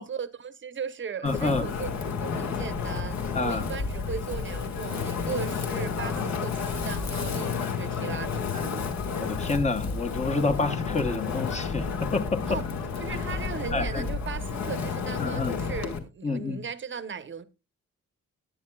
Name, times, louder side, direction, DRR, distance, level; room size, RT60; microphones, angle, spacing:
voice 1, 0.0-1.9 2.2-8.9 12.5-12.7 13.0-17.4, right 6 dB, 40° right, 0.8 m, -37 dB
voice 2, 1.2-1.7 3.3-3.7 9.2-12.6 13.7-14.1 15.2-15.6 16.2-16.6, left 3 dB, 25° left, 0.9 m, -28 dB
Wind, 1.3-16.0, left 5 dB, 65° left, 1.7 m, -31 dB
19.0 x 9.3 x 2.3 m
wide cardioid pair, 150°, 29 cm